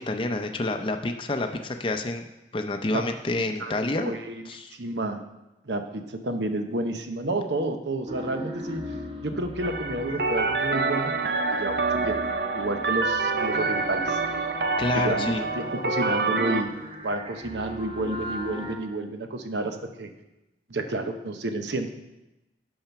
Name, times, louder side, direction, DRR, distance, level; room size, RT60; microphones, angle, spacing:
voice 1, 0.0-2.2 2.5-4.1 4.5-4.7 14.8-15.4, left 2 dB, 30° left, 5 dB, 0.5 m, -28 dB
voice 2, 3.4-3.7 4.0-4.4 4.7-5.2 5.6-8.8 9.2-12.2 12.5-14.2 14.9-16.7 17.0-20.1 20.7-21.9, right 2 dB, 85° right, 6 dB, 0.9 m, -30 dB
sound 1, 8.1-18.7, equal, 30° right, 1.0 m, -37 dB
sound 2, 9.6-16.6, right 4 dB, 60° right, 0.6 m, -27 dB
8.8 x 5.7 x 5.9 m, 0.97 s
head